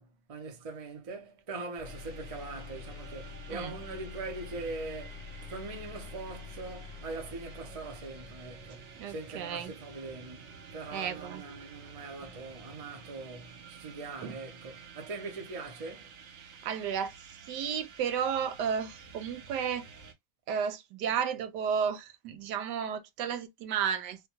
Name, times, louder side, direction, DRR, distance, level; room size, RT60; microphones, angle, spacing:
voice 1, 0.0-16.2, right 3 dB, 35° right, 0.6 m, -42 dB
sound 1, 1.8-8.9, left 7 dB, 65° left, 0.6 m, -47 dB
sound 2, 1.8-20.1, right 5 dB, 55° right, 0.9 m, -50 dB
voice 2, 9.0-9.7 10.9-11.4 14.2-14.3 16.6-17.1 17.5-19.8 20.5-24.3, right 7 dB, 85° right, 1.2 m, -33 dB
3.6 x 2.2 x 2.9 m
omnidirectional pair, 1.8 m